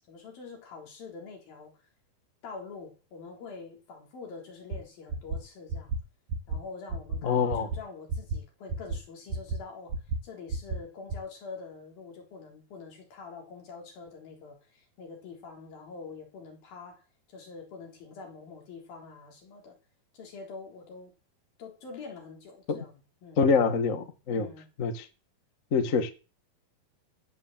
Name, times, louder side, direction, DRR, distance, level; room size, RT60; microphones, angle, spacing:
voice 1, 0.1-1.7 2.4-6.0 6.5-10.0 10.2-17.0 17.3-19.8 20.1-21.1 21.6-22.9 23.2-23.4 24.3-24.7, left 4 dB, 75° left, 5.6 m, -45 dB
sound 1, 4.7-4.8 5.1-5.4 5.7-6.0 6.3-6.6 6.9-7.2 7.5-7.8 8.1-8.4 8.7-9.0 9.3-9.6 9.9-10.2 10.5-10.8 11.1-11.2, right 3 dB, 60° right, 3.4 m, -31 dB
voice 2, 7.2-7.7 22.7-22.8 23.4-24.5 24.8-25.1 25.7-26.1, left 5 dB, 45° left, 1.0 m, -25 dB
15.0 x 9.3 x 7.5 m
omnidirectional pair, 4.2 m